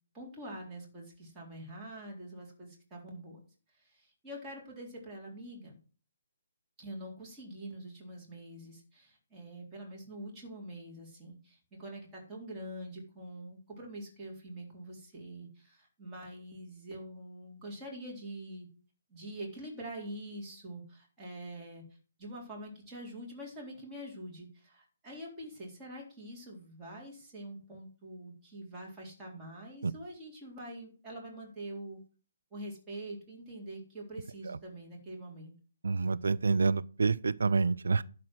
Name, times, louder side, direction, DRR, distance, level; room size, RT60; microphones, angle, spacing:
voice 1, 0.1-3.4 3.8-5.8 6.8-18.7 19.1-21.8 22.2-32.0 32.5-35.5, right 1 dB, 15° right, 3.8 m, -45 dB
voice 2, 35.8-38.0, right 4 dB, 65° right, 0.6 m, -28 dB
11.5 x 4.4 x 7.7 m
figure-of-eight pair, 135°, 0 cm